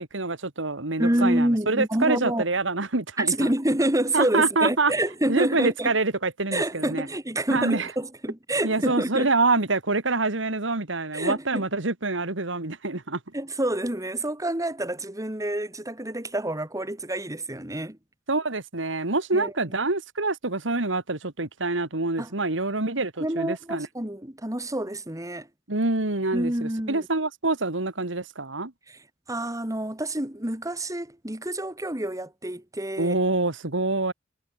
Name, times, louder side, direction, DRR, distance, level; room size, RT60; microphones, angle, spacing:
voice 1, 0.0-3.5 4.1-4.9 5.3-7.1 7.5-7.9 8.6-13.2 18.3-23.9 25.7-28.7 33.0-34.1, right 3 dB, 75° right, 2.2 m, -26 dB
voice 2, 1.0-2.4 3.2-5.9 6.5-9.3 11.1-11.6 13.3-18.0 19.3-19.5 22.2-22.3 23.2-25.5 26.3-27.1 28.9-29.0 29.3-33.1, right 1 dB, 15° right, 2.8 m, -27 dB
head